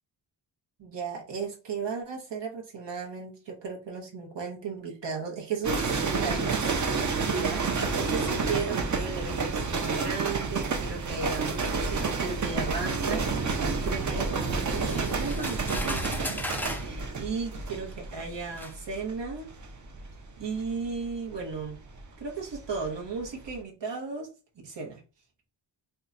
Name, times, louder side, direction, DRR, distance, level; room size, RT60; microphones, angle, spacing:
voice 1, 0.8-6.7 7.3-19.5 20.4-21.8 22.2-24.3 24.6-25.0, right 5 dB, 70° right, 1.0 m, -35 dB
sound 1, 5.6-22.9 23.2-23.6, right 4 dB, 40° right, 0.6 m, -30 dB
sound 2, 14.7-16.9 17.9-18.0 18.6-18.8, left 1 dB, 5° left, 0.3 m, -36 dB
2.8 x 2.2 x 3.7 m
wide cardioid pair, 105°, 44 cm